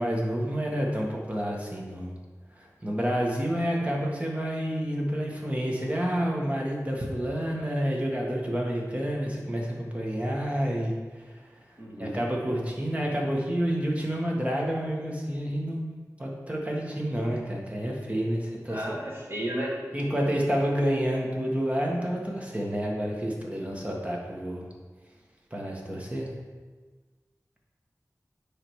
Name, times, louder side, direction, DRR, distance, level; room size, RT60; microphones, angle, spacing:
voice 1, 0.0-2.1 2.5-11.5 12.0-15.8 16.2-18.8 19.9-24.7 25.5-26.3, equal, 20° right, -2 dB, 1.6 m, -29 dB
voice 2, 11.8-12.2 18.7-19.8, right 1 dB, 35° right, -4 dB, 1.9 m, -33 dB
9.7 x 3.5 x 4.7 m, 1.4 s
wide cardioid pair, 60°, 6 cm